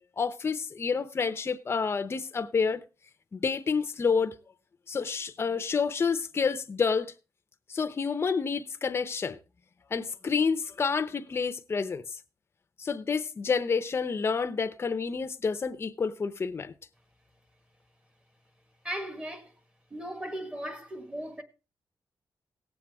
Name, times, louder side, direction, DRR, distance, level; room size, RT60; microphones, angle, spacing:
voice 1, 0.2-2.8 3.3-4.3 4.9-7.1 7.7-9.4 9.9-12.0 12.8-16.7, left 5 dB, 35° left, 0.7 m, -29 dB
voice 2, 18.8-19.5 19.9-21.4, equal, 15° right, 1.5 m, -37 dB
18.0 x 7.5 x 3.5 m
wide cardioid pair, 140°, 7 cm